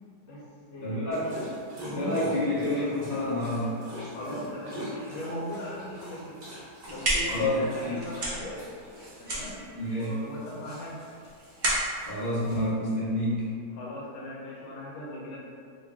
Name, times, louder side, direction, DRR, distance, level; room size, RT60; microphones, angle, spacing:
voice 1, 0.2-1.1 1.7-2.2 4.1-6.4 6.9-8.6 9.2-9.6 10.0-11.0 13.7-15.4, left 1 dB, 85° left, -5 dB, 1.3 m, -39 dB
voice 2, 0.8-1.4 1.9-3.8 7.3-7.9 9.7-10.3 12.0-13.4, left 1 dB, 50° left, -9 dB, 0.6 m, -28 dB
Dog, 1.1-12.7, equal, 40° right, 1.1 m, -43 dB
sound 1, 6.7-13.5, right 1 dB, 80° right, 0.4 m, -33 dB
3.1 x 2.4 x 3.4 m, 2.2 s
omnidirectional pair, 1.9 m